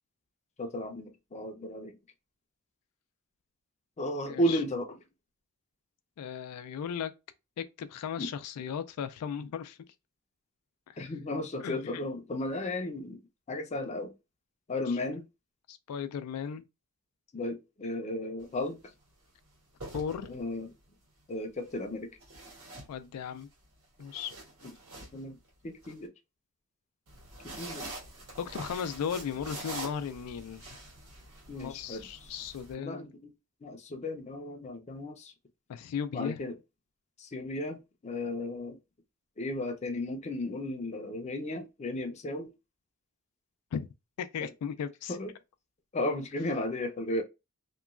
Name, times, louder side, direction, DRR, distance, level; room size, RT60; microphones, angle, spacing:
voice 1, 0.6-1.9 4.0-4.9 8.2-8.3 11.0-13.2 13.5-14.1 14.7-15.2 17.3-18.8 20.3-20.7 21.3-22.1 24.6-24.7 25.1-25.4 25.6-26.1 27.6-27.8 31.5-32.3 32.8-33.3 33.6-35.3 36.1-36.5 37.2-38.8 39.4-42.5 45.1-45.3 45.9-47.2, left 1 dB, 30° left, 0.5 m, -34 dB
voice 2, 4.2-4.6 6.2-7.1 7.6-9.8 10.9-11.1 11.6-12.0 14.9-15.0 15.7-16.6 19.9-20.3 22.9-23.5 24.0-24.3 28.4-30.8 31.5-33.1 35.7-36.4 43.7-43.9 44.2-45.2, left 7 dB, 90° left, 0.3 m, -36 dB
sound 1, 18.4-18.7 19.6-20.7 22.2-23.4 23.8-25.9 27.1-32.7, right 2 dB, 70° right, 1.5 m, -45 dB
2.9 x 2.2 x 2.3 m
head